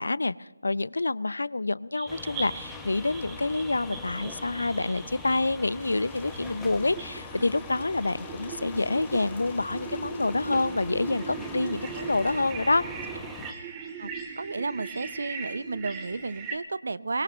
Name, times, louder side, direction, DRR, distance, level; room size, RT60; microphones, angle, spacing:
voice 1, 0.0-12.8, left 2 dB, 70° left, 20 dB, 0.5 m, -27 dB
sound 1, 2.0-16.6, right 6 dB, 15° right, 1.5 m, -41 dB
sound 2, 2.1-13.5, left 3 dB, 5° left, 1.0 m, -42 dB
Rain, 5.8-12.5, left 4 dB, 45° left, 1.1 m, -51 dB
voice 2, 14.4-17.2, right 3 dB, 60° right, 18 dB, 0.6 m, -32 dB
23.0 x 20.0 x 3.0 m, 1.2 s
figure-of-eight pair, 155°, 0 cm